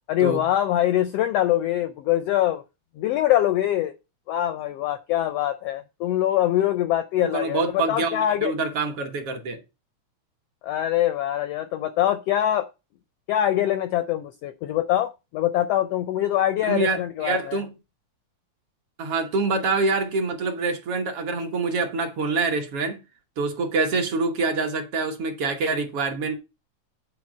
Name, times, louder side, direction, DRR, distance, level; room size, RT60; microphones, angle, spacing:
voice 1, 0.1-2.6 3.0-4.0 4.3-8.5 10.6-12.7 13.3-17.6, left 12 dB, 80° left, 1.4 m, -23 dB
voice 2, 7.2-9.6 16.6-17.7 19.0-23.0 23.4-26.4, right 3 dB, 55° right, 1.9 m, -26 dB
9.2 x 4.4 x 7.3 m
omnidirectional pair, 3.4 m